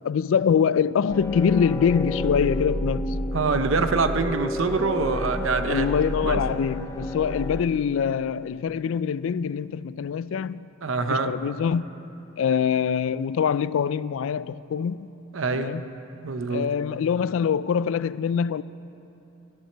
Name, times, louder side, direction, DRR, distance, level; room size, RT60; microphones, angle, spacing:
voice 1, 0.0-3.2 5.7-10.7 11.1-11.9 12.4-15.1 15.5-15.8 16.5-18.6, left 7 dB, 75° left, 0.3 m, -24 dB
sound 1, 1.1-7.6, left 1 dB, 15° left, 0.5 m, -30 dB
voice 2, 3.3-5.9 6.2-6.4 10.8-11.4 15.3-15.8 16.2-16.7, right 4 dB, 75° right, 0.8 m, -25 dB
18.0 x 13.5 x 4.5 m
head